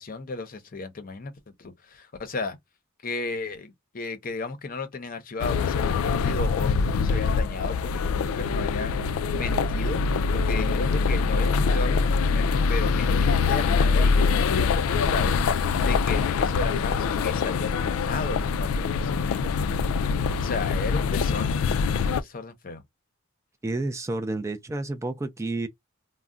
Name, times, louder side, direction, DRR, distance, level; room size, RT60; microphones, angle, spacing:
voice 1, 0.0-2.6 3.0-10.0 10.3-19.9 20.4-22.8, left 3 dB, 45° left, 0.6 m, -34 dB
sound 1, 5.4-22.2, left 5 dB, 85° left, 0.3 m, -24 dB
voice 2, 23.6-25.7, right 2 dB, 15° right, 0.3 m, -30 dB
2.3 x 2.1 x 3.6 m
head